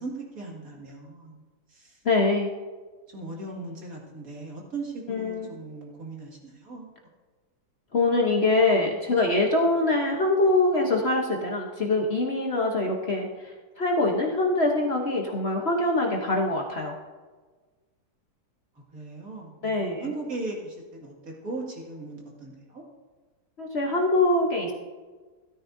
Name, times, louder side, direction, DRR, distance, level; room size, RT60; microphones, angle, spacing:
voice 1, 0.0-2.0 3.1-6.9 18.9-22.8, right 3 dB, 60° right, -2 dB, 2.5 m, -38 dB
voice 2, 2.0-2.5 5.1-5.5 7.9-17.0 19.6-20.1 23.6-24.7, left 2 dB, 45° left, 1 dB, 1.1 m, -24 dB
13.5 x 13.0 x 2.6 m, 1.4 s
omnidirectional pair, 1.8 m